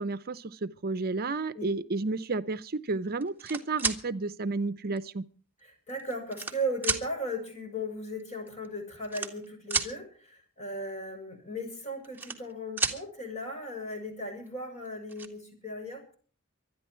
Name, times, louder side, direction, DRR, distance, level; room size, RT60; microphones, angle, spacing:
voice 1, 0.0-5.2, right 3 dB, 45° right, 0.7 m, -32 dB
sound 1, 3.2-4.0 5.0-5.1 5.9-6.6 6.8-7.0 8.2-8.3 8.5-8.7 9.0-9.9 11.8-12.5 12.8-13.0 14.5-14.6 14.9-15.3, right 4 dB, 10° right, 1.9 m, -31 dB
voice 2, 5.9-16.1, equal, 35° left, 6.4 m, -37 dB
25.0 x 10.0 x 4.4 m
head